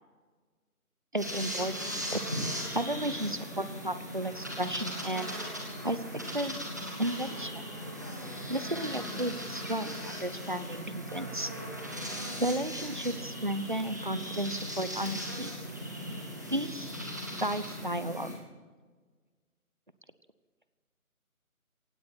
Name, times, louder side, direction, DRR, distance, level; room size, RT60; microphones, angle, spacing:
voice 1, 1.1-2.2 2.7-5.3 5.8-6.0 6.3-6.6 7.0-7.6 8.5-11.5 12.4-15.6 16.5-16.9 17.4-18.4, right 1 dB, 35° right, 13 dB, 0.7 m, -33 dB
sound 1, 1.2-18.3, equal, 10° right, 1.2 m, -38 dB
17.0 x 16.5 x 4.4 m, 1.5 s
figure-of-eight pair, 165°, 44 cm